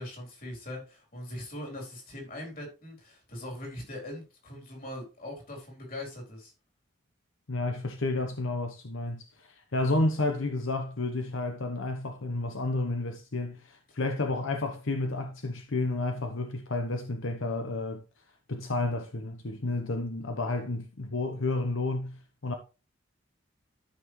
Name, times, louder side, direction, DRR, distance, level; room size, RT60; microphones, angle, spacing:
voice 1, 0.0-6.5, left 1 dB, 45° left, 4.1 m, -41 dB
voice 2, 7.5-18.0 18.5-22.5, left 2 dB, 85° left, 1.0 m, -31 dB
13.0 x 5.7 x 3.1 m
head